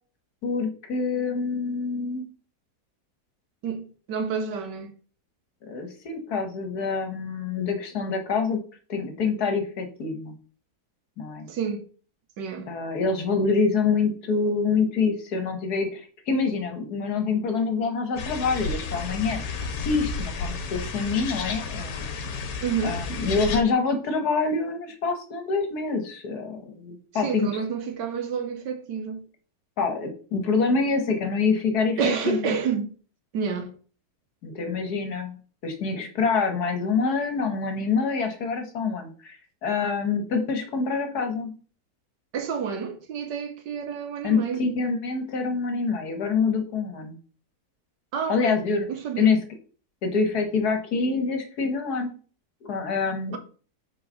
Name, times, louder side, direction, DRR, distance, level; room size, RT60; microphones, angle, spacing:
voice 1, 0.4-2.2 5.7-8.6 8.9-10.3 11.2-11.5 12.7-22.1 22.8-27.5 29.8-32.5 34.4-35.4 35.6-39.4 39.6-41.5 44.2-47.2 48.3-48.9 49.2-49.4 50.0-52.1 52.6-53.4, left 4 dB, 65° left, 1.8 m, -26 dB
voice 2, 3.6-4.9 11.5-11.9 12.4-12.7 22.6-23.0 27.1-29.2 32.0-32.9 33.3-33.7 42.3-44.6 48.1-48.6 48.9-49.4, right 6 dB, 85° right, 1.6 m, -29 dB
sound 1, 18.2-23.6, left 4 dB, 90° left, 1.6 m, -32 dB
5.5 x 4.0 x 5.5 m
omnidirectional pair, 1.8 m